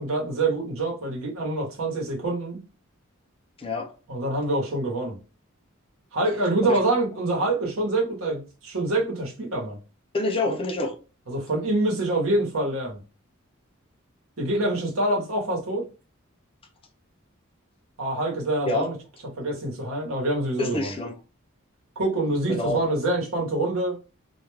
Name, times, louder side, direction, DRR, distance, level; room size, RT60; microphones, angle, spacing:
voice 1, 0.0-2.6 4.1-5.2 6.1-9.8 10.5-10.6 11.3-13.0 14.4-15.8 18.0-18.9 19.4-20.9 22.0-24.0, right 2 dB, 80° right, 1.0 m, -26 dB
voice 2, 3.6-3.9 6.6-6.8 10.1-10.9 18.6-18.9 20.6-21.2 22.5-22.9, left 2 dB, 25° left, 0.4 m, -27 dB
2.3 x 2.2 x 3.2 m
head